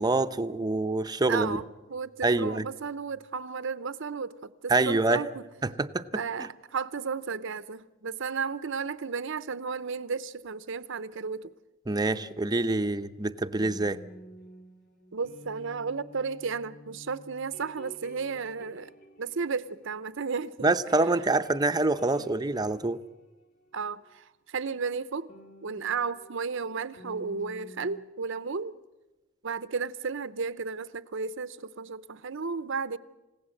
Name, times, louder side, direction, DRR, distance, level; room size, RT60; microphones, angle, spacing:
voice 1, 0.0-1.6 2.2-2.7 4.7-5.2 5.6-6.5 11.9-14.0 20.6-23.0, right 2 dB, 20° right, 0.7 m, -26 dB
voice 2, 1.3-4.3 4.6-5.3 6.1-11.5 15.1-18.9 19.2-20.7 22.2-22.3 23.7-25.3 25.6-28.7 29.4-33.0, right 5 dB, 65° right, 0.7 m, -33 dB
sound 1, 11.9-20.4 20.7-24.1 25.3-28.0, equal, 50° left, 2.8 m, -52 dB
28.5 x 17.0 x 7.8 m
head